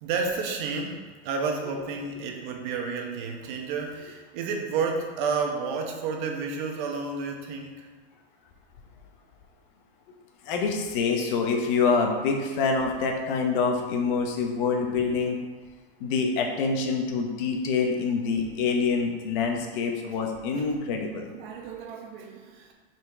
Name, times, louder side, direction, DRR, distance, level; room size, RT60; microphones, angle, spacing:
voice 1, 0.0-7.9 20.6-20.7 21.3-22.7, right 5 dB, 50° right, 2 dB, 1.1 m, -31 dB
voice 2, 10.5-15.4 16.0-21.3, left 4 dB, 55° left, 3 dB, 1.2 m, -26 dB
5.8 x 4.6 x 4.7 m, 1.5 s
supercardioid pair, 155°, 31 cm